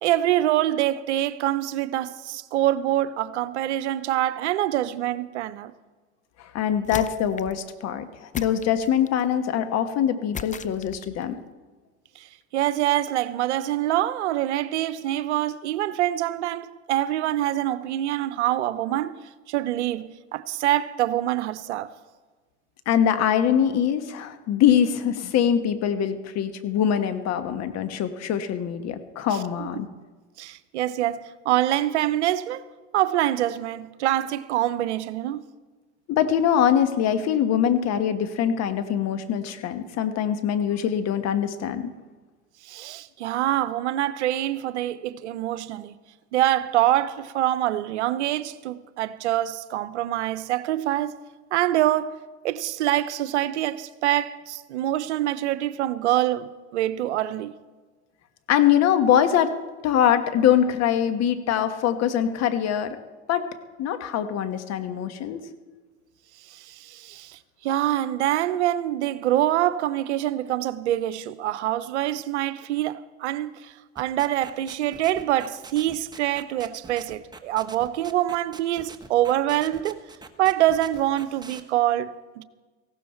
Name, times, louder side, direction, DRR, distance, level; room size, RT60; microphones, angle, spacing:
voice 1, 0.0-5.7 12.2-12.3 12.5-19.2 19.5-21.9 29.6-29.8 30.4-32.6 32.9-35.5 42.6-46.0 46.3-51.2 51.5-52.2 52.4-57.6 66.5-80.0 80.4-82.4, right 13 dB, 80° right, 0.8 m, -25 dB
voice 2, 6.4-11.3 22.9-29.9 36.1-41.9 58.5-59.5 59.8-63.0 63.3-63.5 63.8-65.4, left 9 dB, 50° left, 1.4 m, -23 dB
sound 1, 6.8-7.6 8.3-9.3 10.3-11.2, left 7 dB, 20° left, 0.6 m, -37 dB
sound 2, 74.0-81.6, right 4 dB, 10° right, 1.3 m, -44 dB
18.0 x 15.5 x 4.4 m
hypercardioid pair, 85°, 34 cm